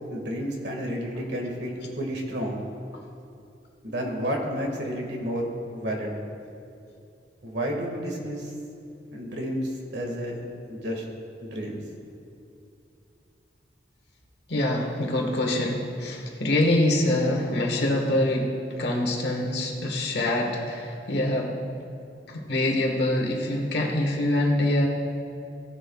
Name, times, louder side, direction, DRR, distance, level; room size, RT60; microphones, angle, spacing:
voice 1, 0.1-2.6 3.8-6.1 7.4-8.5 9.1-11.0 11.4-11.8, equal, 70° right, 1 dB, 1.9 m, -31 dB
voice 2, 14.5-21.5 22.3-24.9, left 1 dB, 65° left, 0 dB, 1.5 m, -25 dB
17.0 x 10.5 x 2.4 m, 2.6 s
head